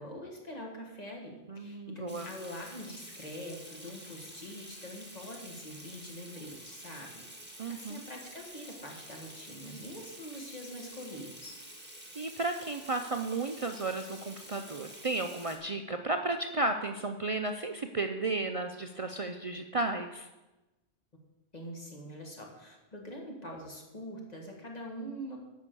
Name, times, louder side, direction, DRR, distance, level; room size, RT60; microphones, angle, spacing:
voice 1, 0.0-7.3 7.7-11.6 21.5-25.4, equal, 35° left, 0 dB, 1.9 m, -44 dB
voice 2, 1.5-2.3 7.6-8.0 12.2-20.3, right 2 dB, 65° right, 6 dB, 0.3 m, -33 dB
Water tap faucet / Sink (filling or washing), 2.1-15.6, right 1 dB, 10° right, 1.5 m, -49 dB
9.8 x 5.6 x 6.8 m, 1.1 s
omnidirectional pair, 1.3 m